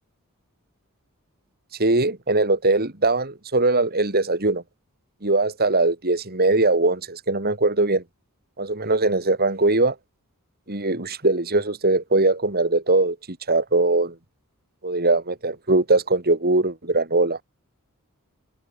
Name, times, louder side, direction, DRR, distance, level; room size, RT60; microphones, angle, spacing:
voice 1, 1.8-4.6 5.2-8.0 8.6-9.9 10.7-13.2 13.5-14.1 14.8-17.4, right 2 dB, 45° right, 3.5 m, -21 dB
head